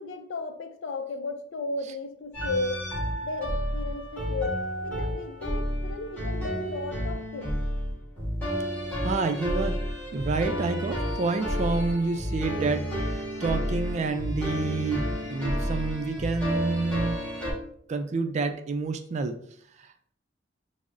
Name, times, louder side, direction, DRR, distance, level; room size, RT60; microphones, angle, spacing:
voice 1, 0.0-2.9 3.2-4.6 4.8-7.6, left 3 dB, 80° left, 8 dB, 0.4 m, -34 dB
sound 1, 2.3-17.5, equal, 10° left, 1.3 m, -31 dB
voice 2, 9.0-9.8 10.1-17.2 17.9-19.4, right 3 dB, 35° right, 7 dB, 0.3 m, -28 dB
6.0 x 2.0 x 2.5 m, 0.64 s
head